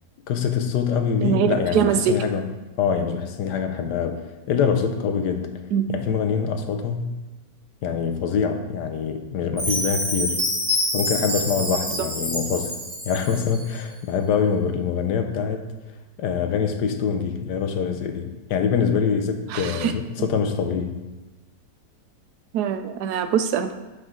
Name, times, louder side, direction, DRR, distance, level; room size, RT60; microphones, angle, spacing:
voice 1, 0.3-4.2 4.5-5.6 5.9-7.1 7.8-10.4 10.9-12.7 13.0-15.6 16.2-21.0, left 6 dB, 85° left, 6 dB, 1.4 m, -24 dB
voice 2, 1.2-2.1 5.7-5.9 19.5-19.9 22.5-23.7, right 8 dB, 80° right, 9 dB, 1.1 m, -23 dB
Chime, 9.6-13.6, left 1 dB, 40° right, 2.7 m, -26 dB
10.5 x 5.1 x 3.8 m, 1.1 s
omnidirectional pair, 1.8 m